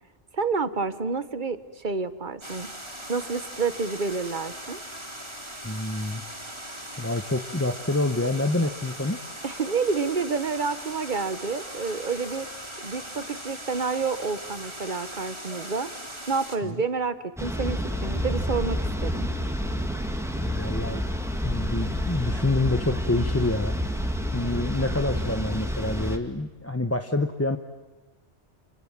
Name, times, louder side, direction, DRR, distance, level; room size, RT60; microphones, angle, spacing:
voice 1, 0.3-2.7 3.1-4.8 9.4-12.5 12.8-15.9 16.3-19.3, right 4 dB, 45° right, 12 dB, 1.4 m, -29 dB
sound 1, 2.4-16.6, right 1 dB, 25° right, 3.7 m, -39 dB
voice 2, 5.6-6.2 7.0-9.2 16.6-16.8 20.4-21.0 21.4-23.8 24.3-27.6, left 2 dB, 15° left, 7 dB, 1.0 m, -27 dB
sound 2, 17.4-26.2, equal, ahead, 2.1 m, -29 dB
30.0 x 27.0 x 7.4 m, 1.2 s
omnidirectional pair, 1.1 m